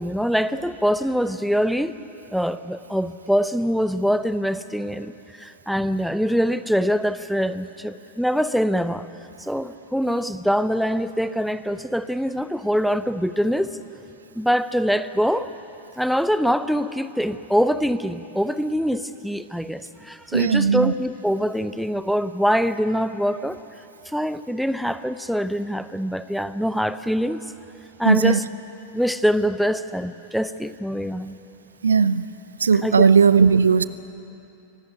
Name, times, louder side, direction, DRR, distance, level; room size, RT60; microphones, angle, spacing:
voice 1, 0.0-1.9 2.3-5.1 5.4-9.1 9.4-13.8 14.3-15.5 16.0-23.6 24.1-27.4 28.0-28.4 28.9-31.4 32.8-33.1, equal, ahead, 13 dB, 0.8 m, -24 dB
voice 2, 20.3-20.9 28.0-28.4 31.8-32.2 32.6-33.8, right 5 dB, 70° right, 16 dB, 0.6 m, -17 dB
24.0 x 17.5 x 9.9 m, 2.8 s
figure-of-eight pair, 90°, 0 cm